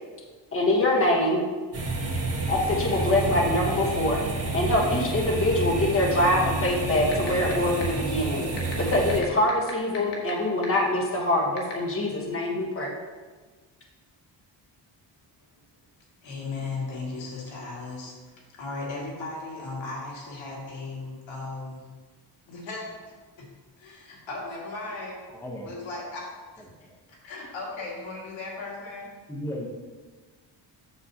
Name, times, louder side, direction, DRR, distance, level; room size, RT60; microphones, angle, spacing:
voice 1, 0.5-1.4 2.5-4.2 4.5-8.4 8.9-12.9, left 1 dB, 30° left, -1 dB, 1.4 m, -24 dB
sound 1, 1.7-9.2, right 2 dB, 35° right, 1.3 m, -29 dB
sound 2, 6.6-6.7 7.1-7.5 7.8-7.9 8.6-10.3 10.6-10.7 11.6-11.7, left 7 dB, 70° left, 1.7 m, -35 dB
voice 2, 16.2-18.2 18.5-21.9 22.5-23.5 23.8-25.3 25.6-26.6 27.1-29.1, left 3 dB, 85° left, -4 dB, 2.2 m, -36 dB
voice 3, 25.3-25.7 26.7-27.0 29.3-29.7, equal, 5° left, -1 dB, 0.9 m, -36 dB
8.1 x 7.0 x 2.9 m, 1.4 s
cardioid pair, 125°, 44 cm